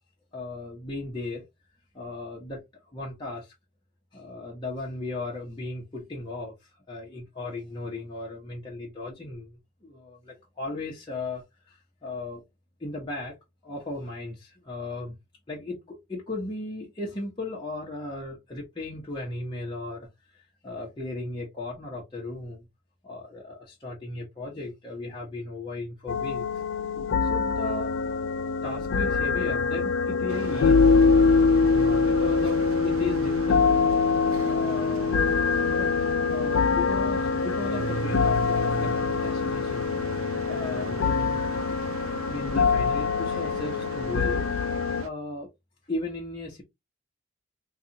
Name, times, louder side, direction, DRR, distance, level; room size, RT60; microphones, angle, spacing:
voice 1, 0.3-1.5 1.9-2.6 2.9-3.5 4.1-6.5 6.9-12.4 12.8-13.3 13.6-15.1 15.5-20.1 20.3-22.6 23.0-26.5 27.3-27.9 28.6-30.9 31.7-33.7 34.5-35.1 35.7-35.9 36.3-39.9 40.5-41.6 42.3-44.5 45.0-45.5 45.9-46.6, left 2 dB, 20° left, 0.9 m, -36 dB
sound 1, 26.1-45.0, left 4 dB, 60° left, 0.3 m, -24 dB
sound 2, 30.3-45.1, right 4 dB, 70° right, 0.5 m, -39 dB
3.9 x 2.4 x 2.8 m
head